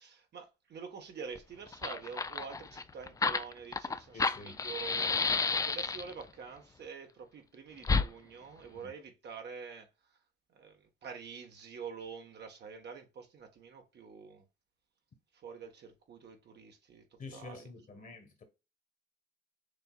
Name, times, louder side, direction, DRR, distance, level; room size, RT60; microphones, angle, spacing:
voice 1, 0.0-5.1 5.6-9.9 10.5-14.4 15.3-17.0 17.3-17.7 18.0-18.1, right 6 dB, 60° right, 1.3 m, -47 dB
Fire, 1.3-1.4 1.7-6.2 7.8-8.1, left 4 dB, 15° left, 0.3 m, -31 dB
voice 2, 4.1-4.6 8.7-8.9 17.2-18.4, left 3 dB, 45° left, 1.4 m, -48 dB
6.6 x 2.7 x 2.4 m
cardioid pair, 90°, 20 cm